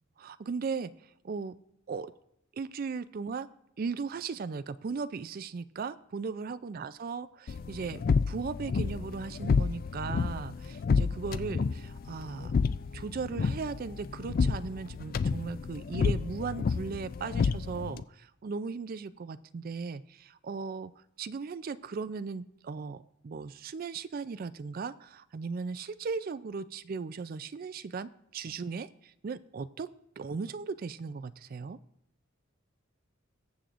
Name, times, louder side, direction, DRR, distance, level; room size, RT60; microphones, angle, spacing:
voice 1, 0.2-0.9 1.2-1.5 1.9-2.1 2.5-3.5 3.8-12.5 12.9-20.9 21.2-29.9 30.2-31.8, right 5 dB, 45° right, 14 dB, 0.4 m, -37 dB
sound 1, 7.5-18.0, left 5 dB, 45° left, 0.3 m, -30 dB
21.0 x 7.5 x 2.5 m, 0.79 s
head